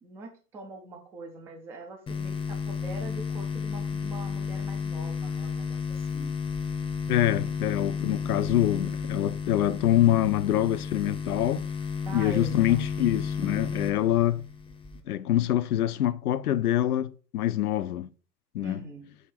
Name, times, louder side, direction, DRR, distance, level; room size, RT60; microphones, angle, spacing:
voice 1, 0.0-6.3 12.1-12.9 18.6-19.1, right 3 dB, 5° right, 0.4 m, -43 dB
sound 1, 2.1-15.0, left 6 dB, 10° left, 0.7 m, -32 dB
voice 2, 7.1-11.6 12.1-14.5 15.1-18.1 18.5-18.8, left 13 dB, 65° left, 0.7 m, -25 dB
6.5 x 3.3 x 5.7 m
figure-of-eight pair, 100°, 49 cm